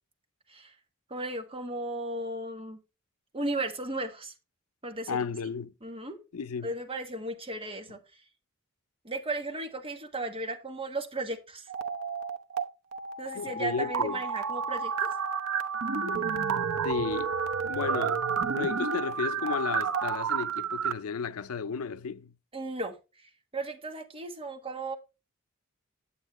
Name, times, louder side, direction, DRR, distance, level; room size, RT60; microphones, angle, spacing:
voice 1, 1.1-2.8 3.3-4.3 4.8-5.2 5.8-6.2 6.6-8.0 9.0-11.7 13.2-15.1 22.5-24.9, right 2 dB, 25° right, 1.2 m, -35 dB
voice 2, 5.1-5.7 6.3-6.7 13.3-14.2 16.8-17.3 17.6-18.3 18.5-22.3, left 5 dB, 90° left, 0.6 m, -33 dB
sound 1, 11.7-12.6 12.9-20.9, right 6 dB, 85° right, 0.9 m, -30 dB
9.6 x 8.0 x 3.1 m
head